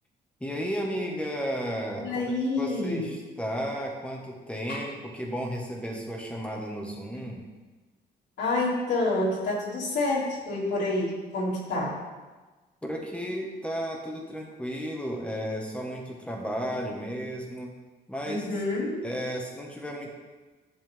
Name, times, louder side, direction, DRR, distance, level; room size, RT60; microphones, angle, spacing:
voice 1, 0.4-2.2 2.6-7.4 12.8-17.7 18.1-18.5 19.0-20.1, equal, 5° left, 0 dB, 1.8 m, -33 dB
voice 2, 2.0-3.1 4.7-4.8 8.4-11.9 18.2-19.1, left 2 dB, 85° left, -6 dB, 3.1 m, -28 dB
11.0 x 7.2 x 3.8 m, 1.2 s
cardioid pair, 90°, 18 cm